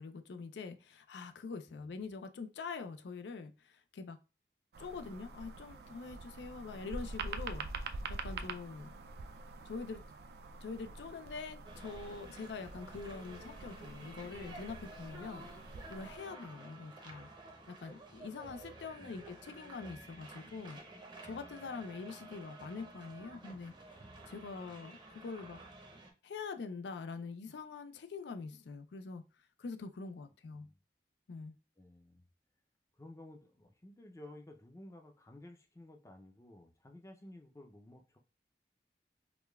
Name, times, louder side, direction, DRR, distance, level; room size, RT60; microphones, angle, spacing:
voice 1, 0.0-4.2 4.8-8.9 9.7-10.0 10.6-15.5 15.9-17.3 17.7-20.8 21.2-23.7 24.3-25.6 26.2-29.2 29.6-30.7 31.3-31.6, left 4 dB, 80° left, 0.4 m, -44 dB
sound 1, 4.7-16.2, right 3 dB, 65° right, 0.3 m, -46 dB
sound 2, 11.6-26.1, right 2 dB, 25° right, 0.6 m, -52 dB
voice 2, 19.0-19.4 30.6-30.8 31.8-32.3 32.9-38.2, left 1 dB, 15° left, 0.5 m, -54 dB
4.9 x 2.2 x 2.3 m
head